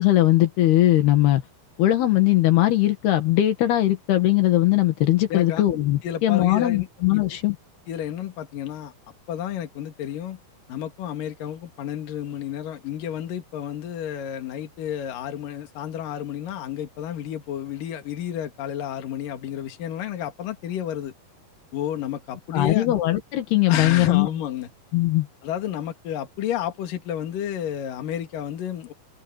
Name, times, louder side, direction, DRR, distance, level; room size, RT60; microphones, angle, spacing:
voice 1, 0.0-1.4 1.8-7.6 22.5-24.3 24.9-25.3, left 15 dB, 80° left, 3.7 m, -20 dB
voice 2, 5.3-5.6 6.0-6.9 7.1-7.2 7.9-8.9 9.3-10.4 10.7-21.1 21.7-22.9 23.7-24.7 25.4-28.9, left 10 dB, 60° left, 3.5 m, -31 dB
omnidirectional pair, 4.5 m